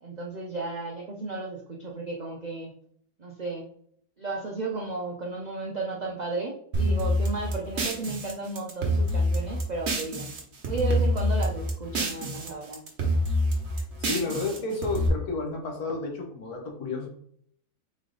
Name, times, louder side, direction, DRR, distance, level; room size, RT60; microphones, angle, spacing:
voice 1, 0.0-2.7 3.2-3.7 4.2-10.3 10.6-12.9, right 3 dB, 75° right, -1 dB, 0.4 m, -34 dB
sound 1, 6.7-10.4 10.6-12.5 12.7-15.1, equal, 50° right, 1.2 m, -26 dB
voice 2, 14.0-17.1, left 3 dB, 80° left, 2 dB, 1.5 m, -31 dB
4.1 x 3.2 x 3.9 m, 0.65 s
omnidirectional pair, 1.6 m